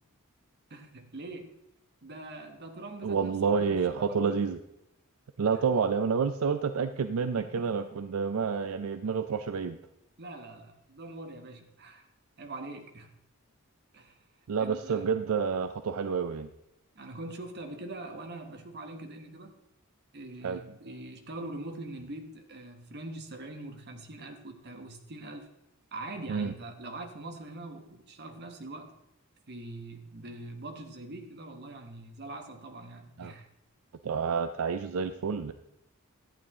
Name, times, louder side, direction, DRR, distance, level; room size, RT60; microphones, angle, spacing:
voice 1, 0.7-1.5 2.0-4.4 5.5-5.7 7.2-7.9 10.2-12.1 12.4-13.1 13.9-14.2 14.6-15.2 16.9-19.5 20.1-25.5 25.9-28.9 29.5-33.5, right 2 dB, 50° right, 5 dB, 1.3 m, -43 dB
voice 2, 3.0-4.6 5.4-9.8 14.5-16.5 20.4-20.6 26.3-26.5 33.2-33.3 34.0-35.5, right 6 dB, 75° right, 9 dB, 0.4 m, -29 dB
12.0 x 8.6 x 3.7 m, 0.87 s
head